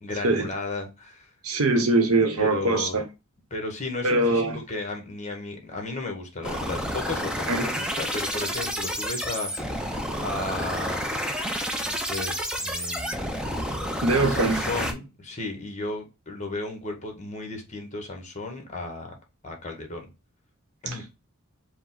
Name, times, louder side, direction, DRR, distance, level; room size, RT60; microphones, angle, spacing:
voice 1, 0.0-1.3 2.4-3.0 3.5-9.9 10.2-11.2 11.8-13.2 14.2-19.1 19.4-20.1 20.8-21.0, left 2 dB, 30° left, 1.1 m, -34 dB
voice 2, 1.4-3.0 4.0-4.6 7.5-7.7 14.0-14.6 20.9-21.0, right 2 dB, 80° right, 0.9 m, -22 dB
sound 1, 6.4-14.9, equal, 5° right, 0.5 m, -30 dB
4.9 x 2.2 x 3.8 m
head